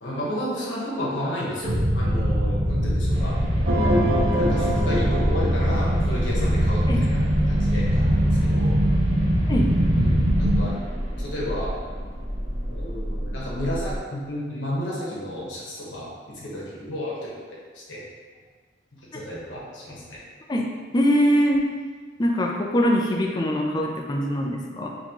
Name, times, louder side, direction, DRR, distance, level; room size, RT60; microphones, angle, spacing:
voice 1, 0.0-3.3 3.8-7.2 7.5-8.7 9.9-10.7 11.2-12.0 12.6-17.3 17.7-18.0 19.1-20.2, equal, 85° left, -6 dB, 1.0 m, -32 dB
sound 1, 1.6-10.6, equal, 80° right, 0.8 m, -22 dB
sound 2, 3.1-14.0, equal, 35° right, 1.0 m, -32 dB
sound 3, 3.7-6.5, equal, 60° right, 0.5 m, -25 dB
voice 2, 20.9-21.7 22.2-24.9, equal, 20° left, 1 dB, 0.4 m, -22 dB
4.2 x 2.9 x 2.9 m, 1.5 s
head